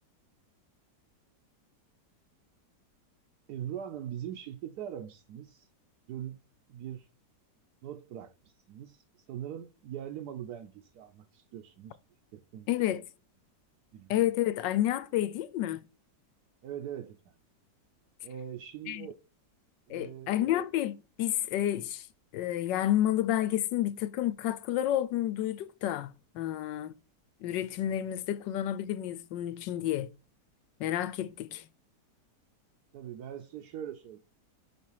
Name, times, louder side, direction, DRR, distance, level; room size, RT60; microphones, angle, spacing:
voice 1, 3.5-5.7 6.1-6.4 6.7-7.1 7.8-12.0 12.3-13.0 13.9-14.2 16.6-17.2 18.2-19.2 19.9-20.3 32.9-34.2, right 10 dB, 70° right, 1.2 m, -42 dB
voice 2, 12.7-13.0 14.1-15.8 18.9-19.1 19.9-22.0 22.3-26.9 27.4-30.1 30.8-31.6, left 12 dB, 85° left, 1.4 m, -30 dB
5.6 x 4.3 x 4.6 m
omnidirectional pair, 1.9 m